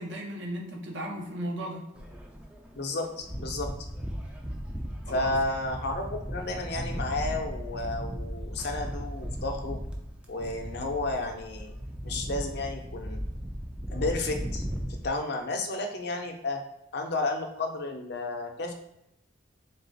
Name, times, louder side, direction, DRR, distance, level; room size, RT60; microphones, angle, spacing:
voice 1, 0.0-1.9 5.1-5.4, equal, 70° right, 0 dB, 0.9 m, -36 dB
sound 1, 2.0-15.1, equal, 5° right, 0.4 m, -36 dB
voice 2, 2.7-3.7 5.1-9.8 10.3-11.7 12.0-13.2 13.9-14.6 15.0-16.6 16.9-18.7, left 2 dB, 55° left, 3 dB, 0.6 m, -32 dB
3.8 x 2.4 x 4.0 m, 0.85 s
head